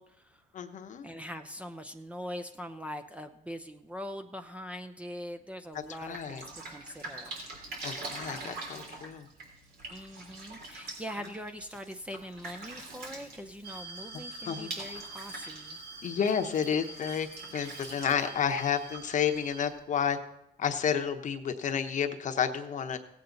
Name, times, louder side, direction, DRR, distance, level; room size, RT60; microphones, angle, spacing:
voice 1, 0.0-0.4 1.0-7.4 9.9-15.8, equal, 5° right, 7 dB, 0.7 m, -42 dB
voice 2, 0.5-1.1 6.0-6.4 7.8-9.3 14.5-14.7 16.0-17.3 17.5-20.2 20.6-23.0, left 7 dB, 45° left, 7 dB, 1.0 m, -30 dB
Drip, 5.7-19.8, right 2 dB, 65° right, 3.4 m, -45 dB
sound 1, 13.6-19.7, right 3 dB, 85° right, 1.4 m, -46 dB
17.0 x 8.4 x 4.0 m, 0.84 s
cardioid pair, 110°, 17 cm